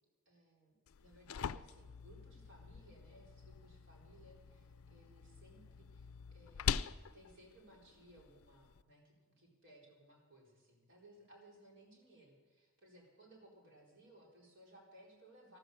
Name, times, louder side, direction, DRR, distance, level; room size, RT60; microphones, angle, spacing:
voice 1, 0.3-0.7 1.0-6.7 7.1-15.6, right 1 dB, 60° right, -1 dB, 4.1 m, -62 dB
sound 1, 0.9-8.8, left 7 dB, 90° left, 0.4 m, -44 dB
13.5 x 12.5 x 6.5 m, 1.3 s
head